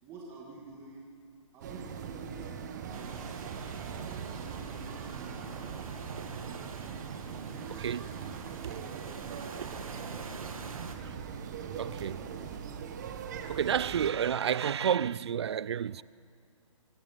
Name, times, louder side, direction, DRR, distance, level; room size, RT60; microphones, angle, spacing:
voice 1, 0.0-1.0 1.5-3.4 4.0-6.1 6.4-6.9 7.3-8.2 8.5-10.8 11.4-12.7, right 3 dB, 15° right, 2.3 m, -51 dB
sound 1, 1.6-14.1, right 7 dB, 30° right, 1.4 m, -41 dB
sound 2, 1.8-12.8, left 3 dB, 25° left, 2.9 m, -60 dB
sound 3, 2.9-11.0, right 4 dB, 85° right, 2.4 m, -46 dB
voice 2, 7.7-8.1 8.6-8.8 11.0-11.2 11.8-12.2 13.5-16.0, right 8 dB, 50° right, 0.5 m, -30 dB
25.0 x 18.0 x 7.4 m
hypercardioid pair, 165°, 18 cm